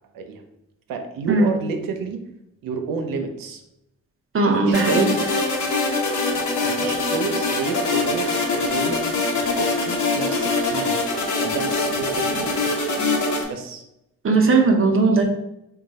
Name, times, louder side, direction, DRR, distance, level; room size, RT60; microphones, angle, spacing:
voice 1, 0.9-2.2 2.6-3.6 4.4-5.3 6.6-11.0 11.4-12.7 13.5-13.8, right 5 dB, 85° right, 6 dB, 0.7 m, -30 dB
voice 2, 4.3-5.1 14.2-15.3, right 3 dB, 40° right, 2 dB, 0.7 m, -17 dB
sound 1, 4.7-13.4, left 3 dB, 60° left, 1.0 m, -23 dB
3.8 x 2.3 x 4.1 m, 0.84 s
cardioid pair, 75°, 33 cm